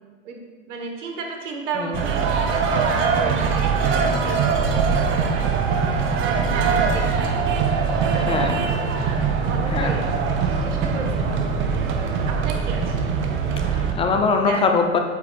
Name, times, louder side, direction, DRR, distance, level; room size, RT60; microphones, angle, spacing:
voice 1, 0.7-6.1 6.4-7.5 8.0-8.7 9.4-10.3 10.6-13.0 14.4-14.7, right 4 dB, 70° right, 2 dB, 1.5 m, -33 dB
sound 1, 1.9-13.9, right 5 dB, 30° right, 0.8 m, -22 dB
voice 2, 8.1-8.6 9.7-10.0 13.7-15.0, left 4 dB, 15° left, 4 dB, 0.6 m, -22 dB
8.4 x 8.1 x 2.5 m, 1.5 s
hypercardioid pair, 100°, 38 cm